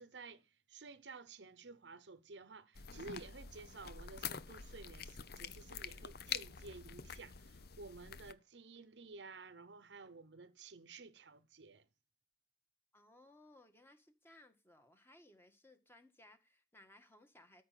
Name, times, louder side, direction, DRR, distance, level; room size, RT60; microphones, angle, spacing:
voice 1, 0.0-11.9, right 3 dB, 80° right, 0.9 m, -53 dB
sound 1, 2.8-8.3, left 7 dB, 60° left, 0.8 m, -46 dB
voice 2, 12.9-17.6, left 1 dB, 15° left, 1.7 m, -63 dB
13.5 x 5.6 x 7.6 m
head